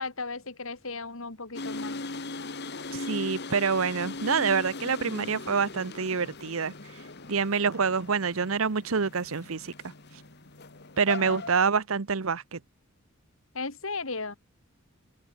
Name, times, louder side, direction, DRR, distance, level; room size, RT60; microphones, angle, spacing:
voice 1, 0.0-2.0 11.2-11.4 13.5-14.4, left 3 dB, 70° left, 2.6 m, -36 dB
sound 1, 1.5-11.5, left 3 dB, 50° left, 2.0 m, -39 dB
voice 2, 2.9-6.7 7.3-9.7 11.0-12.6, right 5 dB, 70° right, 0.9 m, -27 dB
open air
head